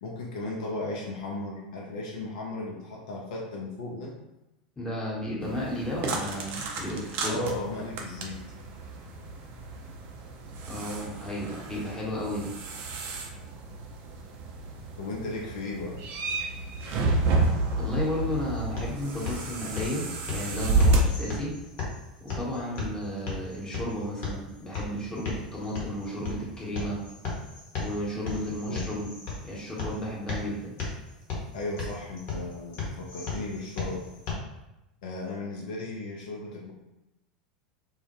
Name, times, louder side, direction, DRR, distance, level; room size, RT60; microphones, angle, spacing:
voice 1, 0.0-4.2 7.2-8.4 15.0-16.0 28.5-28.9 31.5-34.1 35.0-36.7, left 2 dB, 65° left, -1 dB, 0.4 m, -36 dB
voice 2, 4.8-7.4 10.7-12.6 17.7-21.5 22.2-27.0 27.8-29.1 29.4-30.7, left 1 dB, 15° left, -5 dB, 0.9 m, -33 dB
sound 1, 5.4-21.0, right 2 dB, 45° right, 0.5 m, -30 dB
sound 2, 18.3-34.3, left 4 dB, 45° left, 0.8 m, -37 dB
2.1 x 2.0 x 2.9 m, 0.95 s
hypercardioid pair, 85°, 4 cm